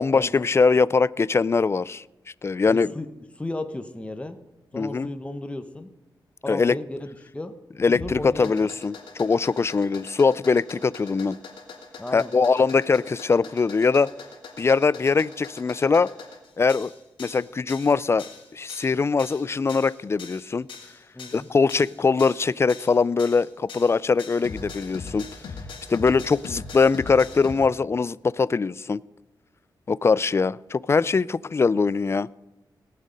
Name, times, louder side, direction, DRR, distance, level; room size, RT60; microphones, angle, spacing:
voice 1, 0.0-2.0 2.4-2.9 4.7-5.1 6.5-6.8 7.8-11.4 12.1-14.1 14.6-16.1 16.6-16.9 17.2-18.3 18.5-20.7 21.3-25.3 25.9-29.0 29.9-32.3, left 4 dB, 30° left, 21 dB, 0.3 m, -22 dB
voice 2, 2.7-3.1 3.4-4.4 4.7-5.9 6.4-7.5 7.9-8.7 12.0-12.3 21.1-21.5, left 1 dB, 15° left, 8 dB, 1.0 m, -34 dB
sound 1, 7.9-27.6, left 4 dB, 85° left, 1.9 m, -41 dB
18.5 x 6.5 x 5.2 m, 1.0 s
cardioid pair, 70°, 8 cm